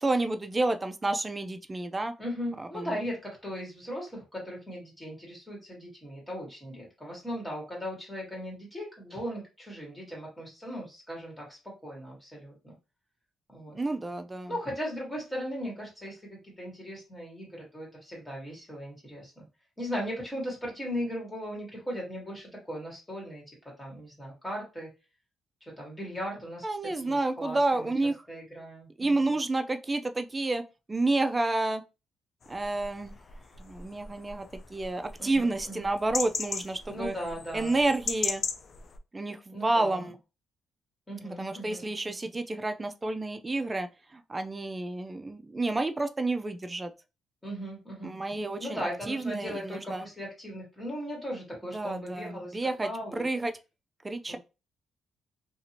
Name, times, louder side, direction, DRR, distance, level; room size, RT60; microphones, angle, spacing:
voice 1, 0.0-2.1 2.6-2.9 13.7-14.6 26.6-28.2 29.0-30.6 30.9-31.8 32.5-33.2 33.6-37.1 37.5-38.4 39.1-40.2 41.2-46.9 48.0-50.1 51.7-53.5 54.0-54.4, right 2 dB, 20° right, 0.4 m, -30 dB
voice 2, 2.2-12.7 13.5-13.8 14.5-19.4 19.8-23.4 23.8-24.9 25.8-26.7 26.9-27.9 28.3-29.3 35.2-35.8 36.9-37.8 39.5-40.1 41.1-41.9 47.4-48.1 48.6-52.6 52.8-53.2 54.3-54.4, equal, 10° left, 1.6 m, -38 dB
sound 1, 32.4-39.0, left 5 dB, 50° left, 0.3 m, -38 dB
2.7 x 2.5 x 2.8 m
cardioid pair, 90°, 0 cm